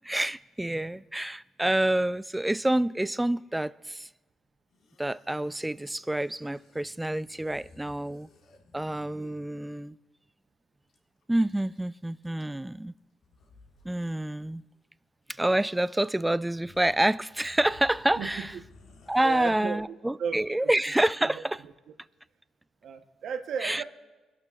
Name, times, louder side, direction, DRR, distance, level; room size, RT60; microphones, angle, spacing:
voice 1, 0.0-4.1 5.0-8.3 8.7-10.0 11.3-12.9 13.8-14.6 15.3-18.5 19.1-21.6 23.6-23.8, right 1 dB, 10° right, 0.3 m, -28 dB
sound 1, 4.7-9.5 10.9-11.0 11.2-11.8 12.2-12.7 13.2-14.0 14.2-14.4 15.6-15.7 16.1-16.2 16.5-19.6, left 3 dB, 75° left, 1.8 m, -56 dB
voice 2, 18.2-18.5 19.2-20.7 21.3-21.7 22.8-23.8, right 6 dB, 70° right, 0.8 m, -35 dB
23.0 x 12.0 x 2.4 m
cardioid pair, 90°, 0 cm